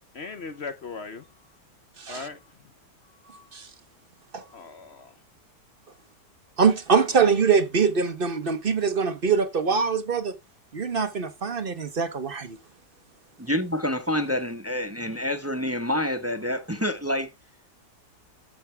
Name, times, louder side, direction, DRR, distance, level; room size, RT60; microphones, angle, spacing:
voice 1, 0.1-1.2 2.1-2.4 4.5-5.1, left 4 dB, 50° left, 0.9 m, -38 dB
voice 2, 2.0-2.3 3.5-3.7 4.3-4.4 6.6-10.3 10.7-12.6, right 5 dB, 45° right, 0.8 m, -23 dB
voice 3, 13.4-17.3, left 1 dB, 10° right, 0.7 m, -27 dB
13.0 x 6.0 x 3.3 m
omnidirectional pair, 1.8 m